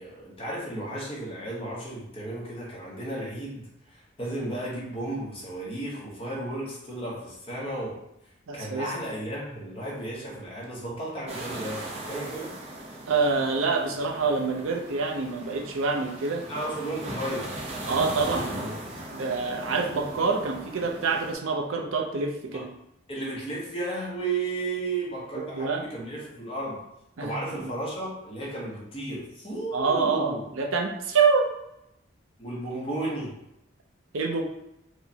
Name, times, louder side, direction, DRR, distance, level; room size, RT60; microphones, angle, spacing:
voice 1, 0.0-8.0 8.5-12.5 16.5-17.6 18.2-18.8 22.5-22.6 23.1-26.9 27.2-30.4 32.4-33.4, right 2 dB, 25° left, -4 dB, 0.9 m, -34 dB
voice 2, 8.5-8.9 13.1-16.5 17.9-18.8 19.1-22.7 25.3-25.8 27.2-27.7 29.7-31.5 34.1-34.4, right 4 dB, 80° right, 1 dB, 0.6 m, -26 dB
sound 1, 11.3-21.3, right 1 dB, 30° right, 0.5 m, -38 dB
4.6 x 2.1 x 2.8 m, 0.83 s
head